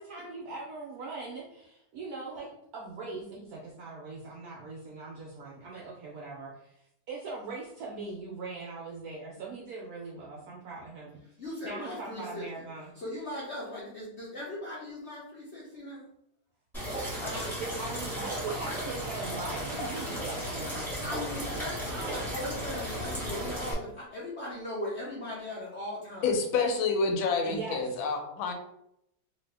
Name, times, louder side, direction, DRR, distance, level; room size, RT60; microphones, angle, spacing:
voice 1, 0.0-6.8 7.1-11.2 11.6-12.9 17.3-21.1 22.1-22.2 27.4-28.0, right 3 dB, 75° right, -3 dB, 0.8 m, -40 dB
voice 2, 11.4-12.4 13.0-16.0 17.2-17.3 21.0-26.3, left 1 dB, 60° left, -7 dB, 0.7 m, -38 dB
sound 1, 16.7-23.7, equal, ahead, 0.9 m, -35 dB
voice 3, 26.2-28.5, left 4 dB, 85° left, 4 dB, 1.3 m, -28 dB
2.8 x 2.6 x 3.2 m, 0.78 s
omnidirectional pair, 2.1 m